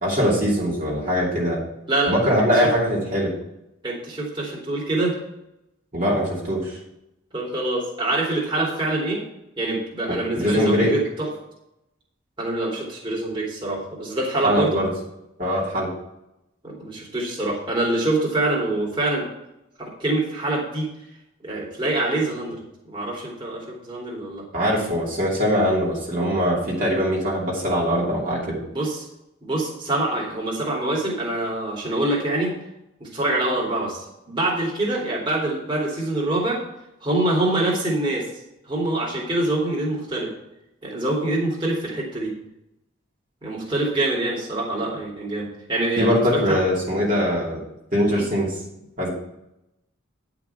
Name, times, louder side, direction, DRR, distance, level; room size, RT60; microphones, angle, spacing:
voice 1, 0.0-1.6 2.1-3.3 5.9-6.8 10.1-10.9 14.4-14.9 15.4-15.9 24.5-28.6 46.0-47.6 47.9-48.5 49.0-49.1, equal, 40° right, -5 dB, 2.8 m, -22 dB
voice 2, 3.8-5.1 7.3-9.2 9.6-11.3 12.4-14.8 16.6-19.3 19.8-20.9 21.4-24.4 28.7-29.1 29.4-32.5 33.0-36.6 37.0-38.3 38.6-40.3 40.8-42.3 43.4-46.6 48.1-48.2, right 2 dB, 25° right, -4 dB, 3.0 m, -25 dB
10.5 x 6.0 x 5.8 m, 0.84 s
head